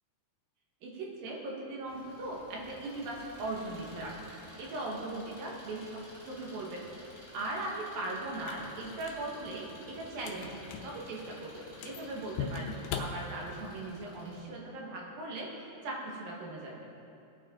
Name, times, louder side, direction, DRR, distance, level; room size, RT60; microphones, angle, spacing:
voice 1, 0.8-4.1 4.6-6.8 7.3-15.5 15.8-16.9, right 2 dB, 60° right, -2 dB, 3.0 m, -39 dB
Engine, 1.8-14.4, left 1 dB, 5° right, 2.2 m, -53 dB
sound 1, 8.3-13.8, left 6 dB, 85° left, 3.1 m, -42 dB
20.0 x 9.1 x 3.8 m, 2.7 s
omnidirectional pair, 5.2 m